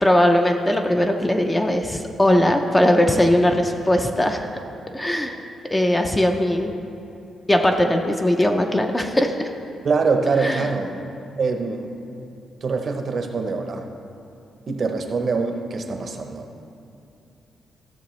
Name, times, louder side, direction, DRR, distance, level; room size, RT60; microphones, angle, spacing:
voice 1, 0.0-4.5 4.9-5.3 5.7-6.7 7.5-9.5 10.4-10.7, left 1 dB, 10° left, 4 dB, 0.4 m, -19 dB
voice 2, 9.8-11.1 11.4-11.9 12.6-13.9 14.7-16.5, right 4 dB, 40° right, 5 dB, 0.6 m, -24 dB
14.0 x 6.6 x 3.1 m, 2.7 s
wide cardioid pair, 160°, 0 cm